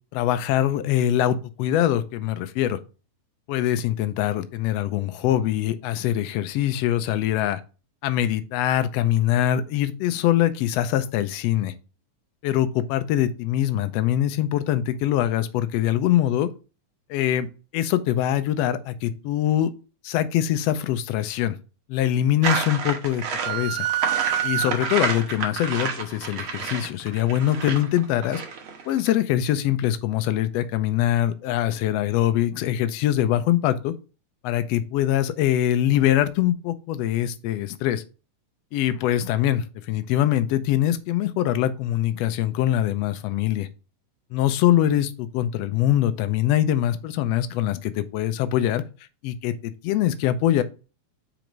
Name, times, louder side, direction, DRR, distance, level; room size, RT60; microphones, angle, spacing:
voice 1, 0.1-2.8 3.5-7.6 8.0-11.7 12.4-16.5 17.1-17.5 17.7-19.7 20.0-21.6 21.9-23.9 24.4-28.4 28.9-33.9 34.4-38.0 38.7-43.7 44.3-48.8 49.2-50.6, left 12 dB, 80° left, 1.5 m, -23 dB
sound 1, 22.4-29.1, right 5 dB, 60° right, 1.5 m, -29 dB
sound 2, 23.4-25.2, right 13 dB, 80° right, 1.8 m, -27 dB
4.9 x 4.6 x 5.2 m
omnidirectional pair, 3.4 m